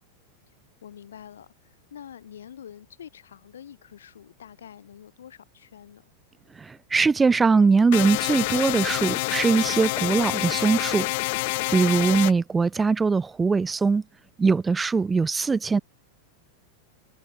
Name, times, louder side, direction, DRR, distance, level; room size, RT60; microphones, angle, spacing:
voice 1, 0.8-6.1, left 9 dB, 70° left, 7.3 m, -46 dB
voice 2, 6.6-14.0 14.4-15.8, right 4 dB, 15° right, 0.3 m, -22 dB
sound 1, 7.9-12.3, left 24 dB, 50° left, 1.6 m, -27 dB
figure-of-eight pair, 90°, 0 cm